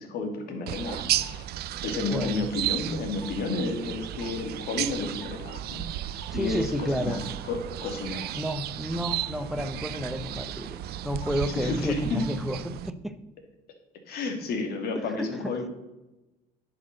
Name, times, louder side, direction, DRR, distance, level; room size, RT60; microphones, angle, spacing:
voice 1, 0.0-1.4 1.8-5.8 6.1-7.2 7.5-8.3 11.6-12.2 14.1-15.7, left 3 dB, 70° left, 4 dB, 2.4 m, -31 dB
sound 1, 0.7-12.9, right 13 dB, 70° right, 0.5 m, -34 dB
sound 2, 1.1-12.5, left 2 dB, 40° left, 3.9 m, -51 dB
voice 2, 6.3-7.2 8.3-13.1 14.9-15.5, equal, ahead, 9 dB, 0.9 m, -31 dB
10.5 x 6.0 x 6.6 m, 1.0 s
cardioid pair, 110°, 17 cm